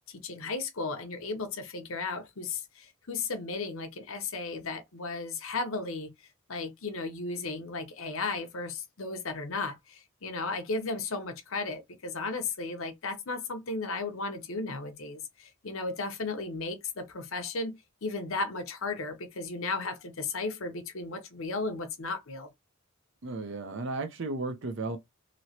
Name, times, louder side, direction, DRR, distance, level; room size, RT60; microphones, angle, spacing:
voice 1, 0.1-6.1 6.5-22.5, left 3 dB, 65° left, 0.8 m, -35 dB
voice 2, 23.2-25.0, right 3 dB, 55° right, 0.6 m, -34 dB
3.1 x 2.9 x 2.8 m
head